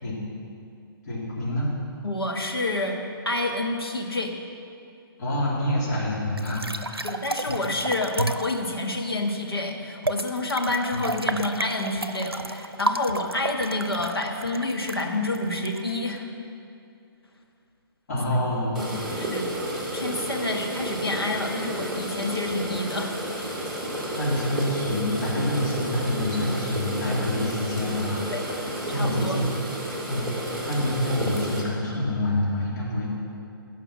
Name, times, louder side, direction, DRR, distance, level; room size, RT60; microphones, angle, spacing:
voice 1, 1.0-1.7 5.2-7.2 7.5-7.6 10.9-11.1 18.1-18.9 24.1-28.6 28.9-29.5 30.1-30.3 30.6-33.1, left 1 dB, 45° left, -6 dB, 3.4 m, -27 dB
voice 2, 2.0-3.0 3.2-4.3 7.0-16.3 18.3-18.4 19.1-19.5 19.9-23.1 23.5-23.6 28.2-28.4 28.9-29.4, left 2 dB, 80° left, 1 dB, 1.6 m, -28 dB
sound 1, 6.4-8.6 10.0-16.2, right 2 dB, 90° right, 0.6 m, -31 dB
sound 2, 18.7-31.6, right 1 dB, ahead, 2.1 m, -31 dB
17.5 x 5.8 x 6.0 m, 2.5 s
figure-of-eight pair, 130°, 12 cm